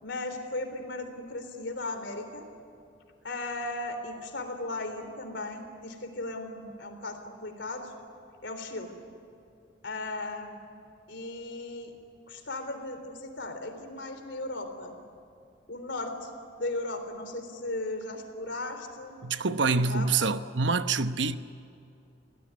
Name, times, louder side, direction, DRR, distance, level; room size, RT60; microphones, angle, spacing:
voice 1, 0.0-2.5 3.2-7.9 8.4-8.9 9.8-10.6 11.1-11.9 12.3-15.0 15.7-16.3 16.5-19.2 19.7-20.1, left 2 dB, 70° left, 3.7 m, -36 dB
voice 2, 19.2-21.4, right 4 dB, 75° right, 1.0 m, -26 dB
28.5 x 18.0 x 9.7 m
head